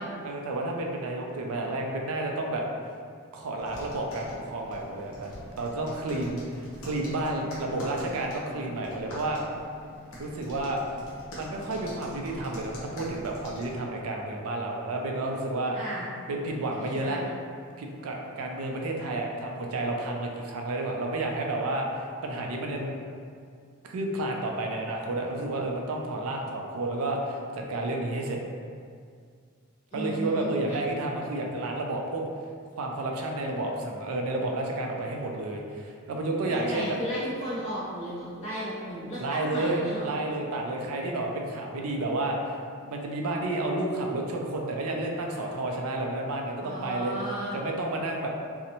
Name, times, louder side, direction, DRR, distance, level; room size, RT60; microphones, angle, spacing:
voice 1, 0.2-2.6 3.3-5.3 5.5-9.4 10.2-10.8 11.4-15.8 16.3-17.2 17.8-23.0 23.8-28.4 29.9-32.2 32.8-37.0 39.2-42.6 42.8-47.1 47.5-48.3, right 2 dB, 75° right, 1 dB, 0.4 m, -31 dB
sound 1, 3.6-13.8, equal, 75° left, 0.8 m, -44 dB
voice 2, 15.7-16.1 16.7-17.3 29.9-30.8 36.4-40.1 46.6-47.6, equal, 30° left, -13 dB, 0.6 m, -35 dB
2.6 x 2.0 x 2.8 m, 2.2 s
head